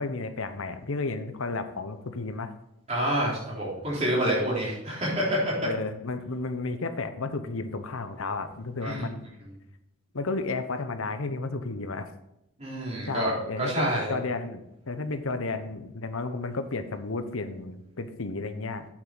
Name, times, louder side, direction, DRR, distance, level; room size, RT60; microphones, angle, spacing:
voice 1, 0.0-2.5 5.6-9.2 10.1-12.1 13.1-18.9, left 3 dB, 65° left, 9 dB, 0.9 m, -32 dB
voice 2, 2.9-5.5 8.8-9.1 12.6-14.1, right 1 dB, 30° right, -6 dB, 3.6 m, -28 dB
8.8 x 7.8 x 4.0 m, 0.85 s
head